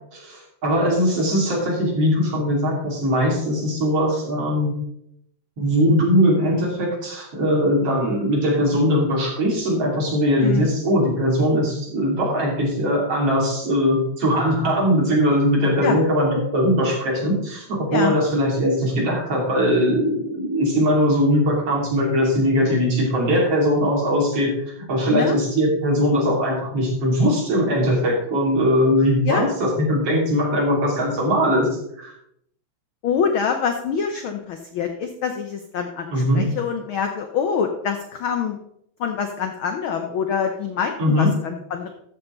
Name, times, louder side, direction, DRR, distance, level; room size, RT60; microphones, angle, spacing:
voice 1, 0.1-4.7 5.6-24.5 24.9-31.7 32.0-32.1 36.1-36.4 41.0-41.3, equal, 50° right, -3 dB, 4.0 m, -20 dB
voice 2, 33.0-38.6 39.0-41.9, left 6 dB, 85° left, 5 dB, 1.1 m, -25 dB
13.5 x 7.1 x 3.9 m, 0.73 s
omnidirectional pair, 3.4 m